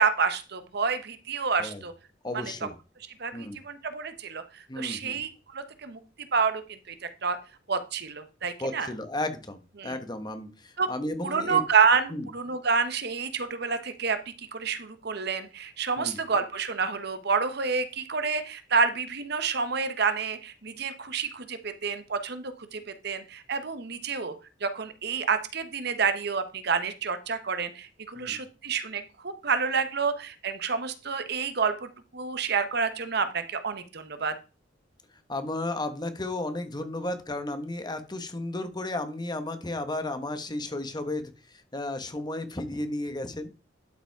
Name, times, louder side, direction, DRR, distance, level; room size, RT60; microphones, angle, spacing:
voice 1, 0.0-1.9 2.3-2.5 3.2-6.0 6.3-7.4 7.7-8.9 9.8-9.9 10.8-10.9 11.2-24.3 24.6-34.3, right 5 dB, 65° right, 10 dB, 1.1 m, -28 dB
voice 2, 2.2-2.7 3.3-3.6 4.7-5.2 8.6-11.6 12.1-12.3 16.0-16.2 28.2-28.4 35.3-41.3 41.7-43.6, left 2 dB, 25° left, 9 dB, 1.2 m, -33 dB
12.0 x 5.1 x 4.6 m, 0.31 s
head